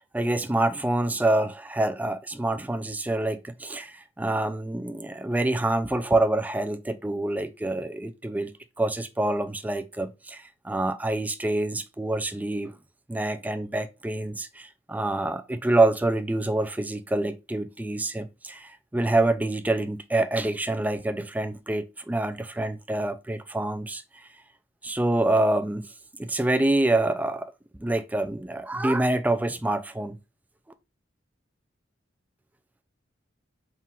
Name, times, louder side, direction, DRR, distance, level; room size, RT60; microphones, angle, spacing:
voice 1, 0.0-8.5 8.8-12.8 13.1-24.0 24.8-25.9 26.2-27.5 27.8-30.2, right 2 dB, 10° right, 0.3 m, -26 dB
3.7 x 2.4 x 4.2 m
head